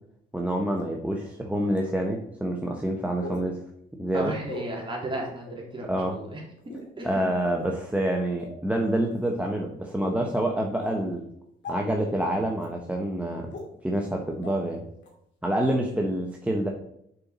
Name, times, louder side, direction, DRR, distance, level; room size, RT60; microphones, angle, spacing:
voice 1, 0.3-3.6 4.0-4.3 5.9-6.2 7.0-11.2 11.7-13.5 13.8-14.8 15.4-16.7, right 1 dB, 5° right, 0 dB, 1.0 m, -27 dB
sound 1, 0.7-0.8 1.7-1.8 3.2-3.4 4.4-4.6 5.4-5.6 6.6-6.9 7.4-7.7 8.4-8.5 9.1-9.3 10.0-10.1 10.8-10.9 11.6-11.7 12.6-12.7 13.5-13.6 14.4-14.5 15.0-15.1, left 2 dB, 65° left, 2.6 m, -38 dB
voice 2, 4.1-6.4 7.0-7.3, right 1 dB, 25° right, -1 dB, 2.9 m, -34 dB
7.1 x 5.6 x 4.2 m, 0.74 s
cardioid pair, 90°, 20 cm